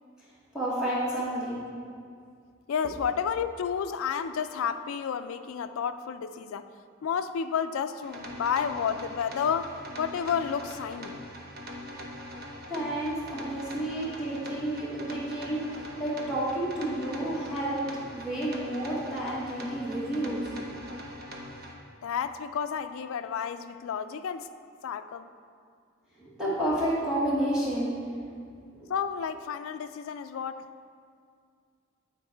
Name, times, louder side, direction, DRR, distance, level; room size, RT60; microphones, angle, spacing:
voice 1, 0.5-1.6 12.7-17.8 18.1-20.4 26.2-28.0 28.7-28.9, right 1 dB, 5° right, -9 dB, 1.2 m, -30 dB
voice 2, 2.7-6.7 7.0-11.2 22.0-24.5 24.8-25.3 28.9-30.7, left 7 dB, 90° left, 10 dB, 0.3 m, -31 dB
sound 1, 8.0-21.7, equal, 50° right, 0.9 m, -42 dB
9.6 x 4.6 x 4.5 m, 2.2 s
head